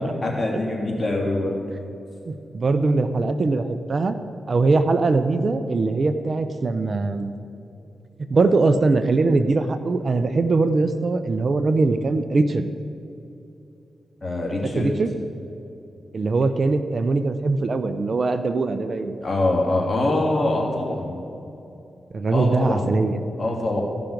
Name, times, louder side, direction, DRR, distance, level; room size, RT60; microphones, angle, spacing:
voice 1, 0.0-1.6 14.2-14.9 19.2-21.2 22.3-23.0 23.4-23.8, left 2 dB, 30° left, -2 dB, 2.9 m, -24 dB
voice 2, 2.3-4.2 4.5-7.3 8.2-12.7 14.6-15.1 16.1-19.2 22.1-23.2, right 3 dB, 55° right, 10 dB, 0.5 m, -21 dB
15.5 x 5.9 x 5.1 m, 2.8 s
cardioid pair, 50°, 0 cm